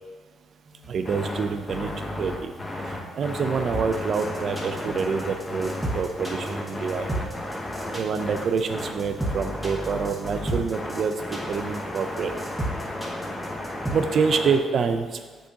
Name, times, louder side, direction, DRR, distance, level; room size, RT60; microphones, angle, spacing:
sound 1, 0.7-9.2, right 2 dB, 25° right, 1.4 m, -46 dB
voice 1, 0.9-1.9 2.2-2.5 2.9-7.2 7.9-12.4 13.9-15.2, right 5 dB, 55° right, 8 dB, 0.6 m, -27 dB
sound 2, 1.0-14.6, left 1 dB, 20° left, 1.1 m, -33 dB
sound 3, 3.7-13.9, right 1 dB, 5° right, 2.0 m, -32 dB
7.7 x 6.4 x 2.9 m, 1.4 s
cardioid pair, 90°, 0 cm